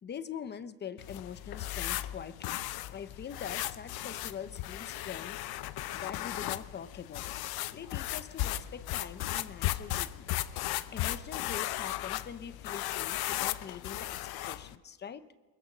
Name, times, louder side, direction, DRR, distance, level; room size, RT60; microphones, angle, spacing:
voice 1, 0.0-2.6 2.9-5.4 5.9-7.2 7.7-10.3 10.9-15.3, left 7 dB, 25° left, 13 dB, 0.7 m, -43 dB
sound 1, 1.0-14.8, left 15 dB, 70° left, 0.7 m, -36 dB
23.5 x 22.0 x 6.1 m, 1.3 s
cardioid pair, 170°, 38 cm